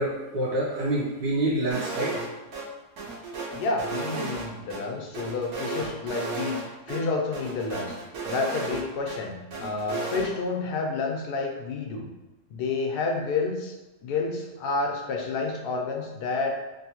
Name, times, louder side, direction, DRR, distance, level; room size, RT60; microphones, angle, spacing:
voice 1, 0.0-2.2, right 1 dB, 80° right, -6 dB, 1.4 m, -27 dB
sound 1, 1.7-2.3 2.5-2.6 3.0-4.8 5.1-6.6 6.9-7.0 7.3-9.2 9.5-10.3, right 3 dB, 65° right, 1.1 m, -33 dB
voice 2, 3.5-8.0 8.3-12.1 12.5-13.8 14.0-16.6, left 3 dB, 75° left, 1 dB, 1.1 m, -29 dB
3.4 x 2.6 x 2.8 m, 1.1 s
omnidirectional pair, 1.8 m